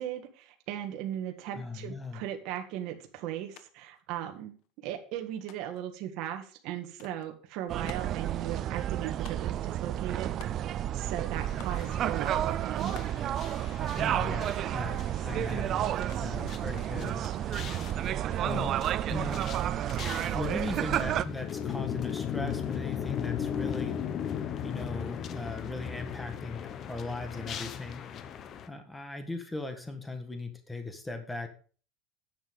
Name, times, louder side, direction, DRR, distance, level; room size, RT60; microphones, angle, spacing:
voice 1, 0.0-4.6 4.8-10.3 10.9-13.0, right 11 dB, 50° right, 4 dB, 1.7 m, -37 dB
voice 2, 1.5-2.2 14.0-15.9 16.2-17.3 18.4-18.8 19.1-19.5 20.3-24.0 24.6-28.1 28.7-31.5, left 3 dB, 5° left, 6 dB, 1.6 m, -38 dB
sound 1, 3.6-3.7 3.9-4.7 5.5-5.9 7.0-7.3 7.9-8.3 9.3-9.7 10.4-10.9 11.6-11.9 13.0-13.3 14.5-14.8 16.1-16.3 17.9-18.3, left 10 dB, 55° left, 1.2 m, -51 dB
sound 2, 7.7-21.2, right 11 dB, 35° right, 0.4 m, -31 dB
sound 3, 11.4-28.7, left 8 dB, 30° left, 0.9 m, -38 dB
10.0 x 7.2 x 5.2 m, 0.39 s
cardioid pair, 160°, 0 cm